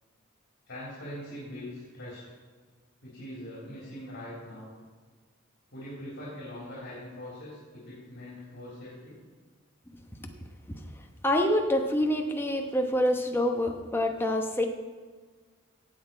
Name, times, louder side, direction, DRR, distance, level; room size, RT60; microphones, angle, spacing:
voice 1, 0.7-2.2 3.0-4.7 5.7-9.2, left 1 dB, 55° left, -7 dB, 3.5 m, -42 dB
voice 2, 11.2-14.7, left 1 dB, 10° left, 3 dB, 1.0 m, -26 dB
16.0 x 8.2 x 4.6 m, 1.5 s
head